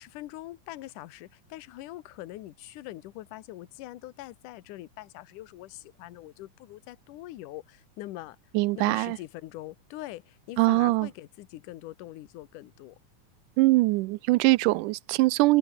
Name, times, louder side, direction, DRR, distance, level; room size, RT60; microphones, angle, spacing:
voice 1, 0.0-8.4 8.8-13.0, left 16 dB, 75° left, 2.5 m, -43 dB
voice 2, 8.5-9.2 10.6-11.1 13.6-15.6, right 21 dB, 80° right, 2.0 m, -22 dB
omnidirectional pair, 3.8 m